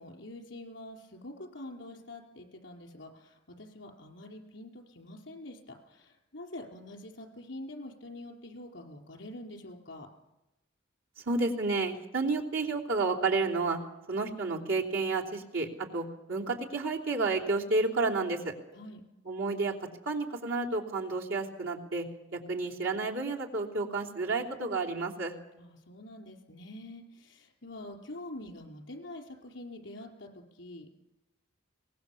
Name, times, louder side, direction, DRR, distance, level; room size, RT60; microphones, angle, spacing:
voice 1, 0.0-10.1 18.7-19.0 25.6-30.9, left 1 dB, 65° left, 2 dB, 4.3 m, -46 dB
voice 2, 11.2-13.8 14.1-18.5 19.2-19.7 20.0-22.1 22.3-25.3, right 3 dB, 90° right, -1 dB, 3.4 m, -31 dB
23.0 x 19.5 x 7.2 m, 0.95 s
head